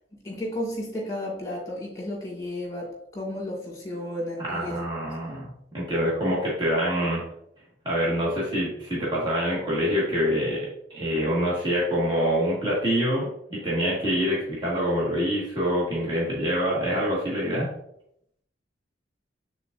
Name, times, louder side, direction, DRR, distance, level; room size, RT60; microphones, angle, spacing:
voice 1, 0.2-2.9 3.1-4.8 5.1-5.2, left 1 dB, 20° left, -2 dB, 2.3 m, -33 dB
voice 2, 4.4-7.2 7.8-17.7, equal, 25° right, -7 dB, 1.7 m, -26 dB
8.9 x 4.1 x 2.6 m, 0.74 s
head